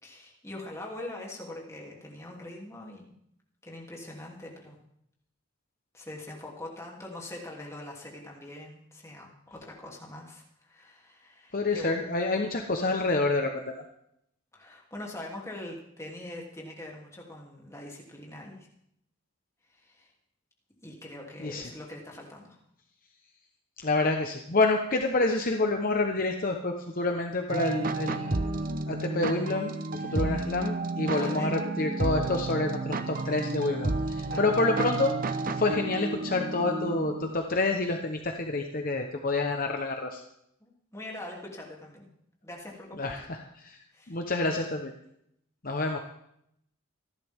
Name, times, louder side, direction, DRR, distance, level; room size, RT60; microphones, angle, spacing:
voice 1, 0.0-3.0 3.6-4.8 5.9-12.0 14.5-18.7 19.7-20.1 20.8-22.6 30.0-30.1 31.1-31.6 34.2-34.5 40.6-42.1 42.4-43.1 43.9-44.2, left 1 dB, 15° left, -2 dB, 2.9 m, -43 dB
voice 2, 11.5-13.8 21.4-21.7 23.8-28.5 28.9-40.2 43.0-43.8 44.1-44.9 45.6-46.0, left 2 dB, 45° left, 3 dB, 1.1 m, -28 dB
sound 1, 27.5-37.4, right 2 dB, 45° right, 0.9 m, -31 dB
26.5 x 11.5 x 3.6 m, 0.75 s
head